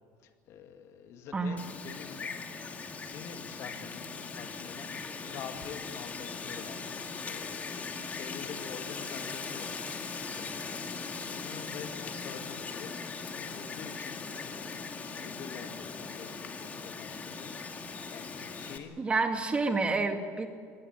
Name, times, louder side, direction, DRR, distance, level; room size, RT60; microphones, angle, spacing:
voice 1, 0.2-2.4 3.0-7.7 8.1-12.9 13.3-19.1, left 7 dB, 55° left, 6 dB, 2.1 m, -47 dB
Wind, 1.6-18.8, left 4 dB, 25° left, 2.4 m, -39 dB
voice 2, 19.0-20.5, right 3 dB, 20° right, 5 dB, 2.3 m, -29 dB
24.5 x 18.5 x 9.5 m, 2.1 s
cardioid pair, 125°, 6 cm